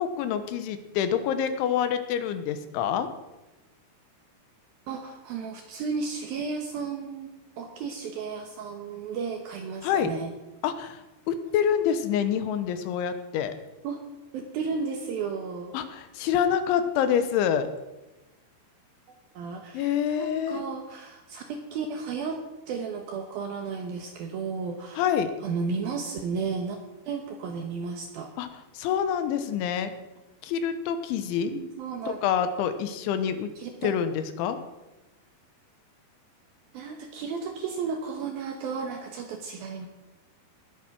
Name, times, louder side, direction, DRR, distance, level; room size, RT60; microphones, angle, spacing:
voice 1, 0.0-3.1 9.8-10.1 10.6-13.5 15.7-17.7 19.7-20.6 25.0-25.3 28.4-28.5 28.7-29.9 30.4-31.5 32.1-33.5 33.8-34.6, left 8 dB, 80° left, 10 dB, 3.4 m, -26 dB
voice 2, 4.9-7.3 7.6-10.3 13.8-14.1 14.3-15.8 19.3-25.1 25.4-26.8 27.1-28.3 31.4-32.2 33.6-33.9 36.7-39.9, right 5 dB, 70° right, 4 dB, 2.3 m, -33 dB
20.0 x 8.4 x 6.0 m, 1.0 s
omnidirectional pair, 5.5 m